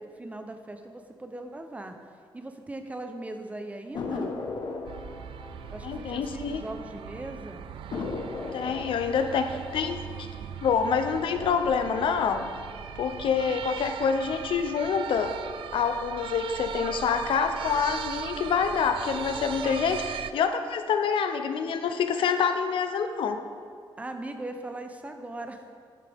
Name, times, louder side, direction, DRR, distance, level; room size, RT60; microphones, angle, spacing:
voice 1, 0.0-2.0 2.3-4.3 5.7-7.7 24.0-25.6, right 2 dB, 15° right, 6 dB, 0.8 m, -39 dB
sound 1, 3.9-7.0 7.3-7.4 7.9-10.8 11.3-11.9, left 3 dB, 60° left, 1.3 m, -37 dB
sound 2, 4.8-20.3, right 8 dB, 90° right, 0.4 m, -39 dB
voice 2, 5.8-6.6 8.5-10.3 10.6-12.5 13.0-15.3 15.7-23.4, left 6 dB, 80° left, 7 dB, 0.8 m, -27 dB
11.5 x 11.0 x 3.6 m, 2.1 s
wide cardioid pair, 150°, 9 cm